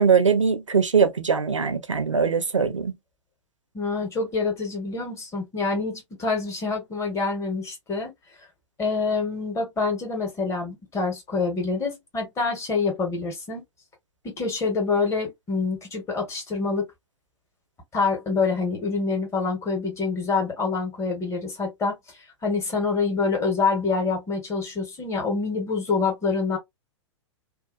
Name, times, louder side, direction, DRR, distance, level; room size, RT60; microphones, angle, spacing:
voice 1, 0.0-2.9, right 6 dB, 85° right, 0.6 m, -21 dB
voice 2, 3.7-8.1 8.8-13.6 14.2-16.8 17.9-21.9 22.4-26.6, left 4 dB, 20° left, 1.4 m, -26 dB
2.7 x 2.4 x 2.5 m
figure-of-eight pair, 105°, 16 cm